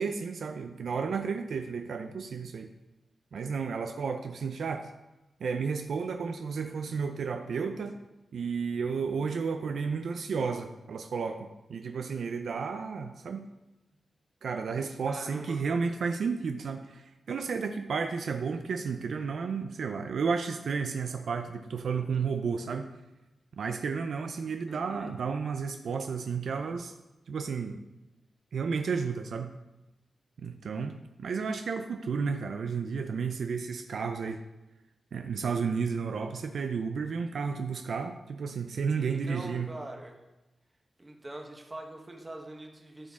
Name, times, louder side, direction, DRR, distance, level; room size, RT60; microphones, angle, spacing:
voice 1, 0.0-2.7 3.3-4.9 5.4-8.0 8.3-13.5 14.4-22.9 23.6-26.9 27.3-27.8 28.5-29.5 30.4-34.4 35.1-39.7, right 5 dB, 70° right, 6 dB, 0.5 m, -32 dB
voice 2, 15.1-15.9 24.7-25.1 39.0-40.2 41.0-43.1, right 1 dB, 20° right, 2 dB, 1.3 m, -43 dB
13.5 x 6.2 x 3.7 m, 1.0 s
wide cardioid pair, 160°, 0 cm